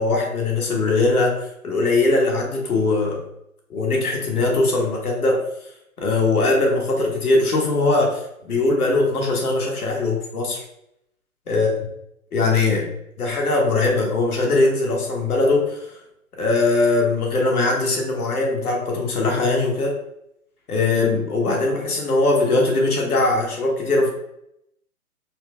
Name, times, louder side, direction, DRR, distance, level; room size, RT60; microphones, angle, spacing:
voice 1, 0.0-3.2 3.7-5.4 6.0-10.6 11.5-11.7 12.3-12.9 13.2-15.9 16.4-20.0 20.7-24.1, left 2 dB, 75° left, -1 dB, 1.2 m, -20 dB
4.2 x 2.3 x 2.2 m, 0.78 s
figure-of-eight pair, 135°, 45 cm